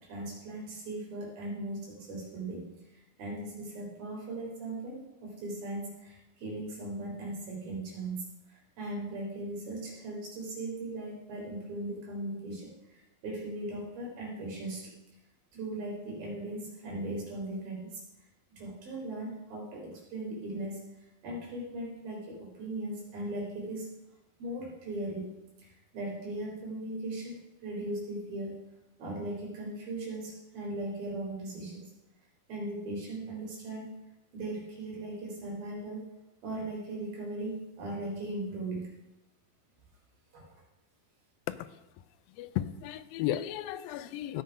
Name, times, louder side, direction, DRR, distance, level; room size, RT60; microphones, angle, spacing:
voice 1, 0.0-2.8 3.2-12.7 13.2-14.9 15.5-18.0 18.6-20.8 21.2-23.9 24.4-28.6 29.0-31.8 32.5-33.9 34.3-36.1 36.4-38.9 40.3-40.4, right 1 dB, 80° right, -3 dB, 5.5 m, -38 dB
voice 2, 42.4-44.4, left 13 dB, 85° left, 14 dB, 2.4 m, -34 dB
16.5 x 6.7 x 5.2 m, 0.96 s
omnidirectional pair, 4.1 m